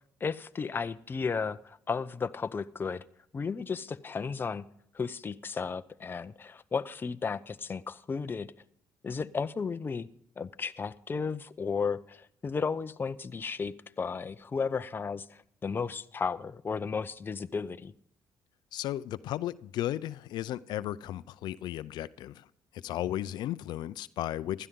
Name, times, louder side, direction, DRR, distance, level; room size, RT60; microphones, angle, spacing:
voice 1, 0.2-3.0 3.3-4.7 4.9-8.5 9.0-10.1 10.4-17.9, left 5 dB, 30° left, 0.7 m, -34 dB
voice 2, 18.7-22.5 22.7-24.7, left 13 dB, 75° left, 0.5 m, -35 dB
16.0 x 12.0 x 3.8 m
cardioid pair, 100°, 7 cm